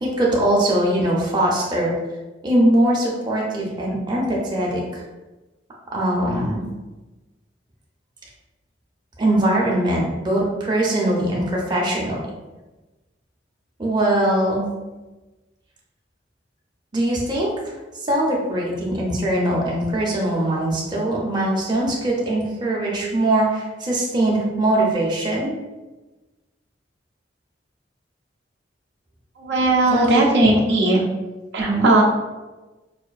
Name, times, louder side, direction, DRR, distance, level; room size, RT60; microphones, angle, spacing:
voice 1, 0.0-1.9 2.4-5.0 5.9-6.6 9.2-12.2 13.8-14.6 16.9-17.5 18.1-25.5 29.9-30.5 31.6-31.9, right 1 dB, 25° right, -4 dB, 0.7 m, -21 dB
voice 2, 29.4-31.0 31.5-32.0, right 2 dB, 70° right, -2 dB, 0.7 m, -17 dB
4.9 x 2.6 x 2.4 m, 1.1 s
head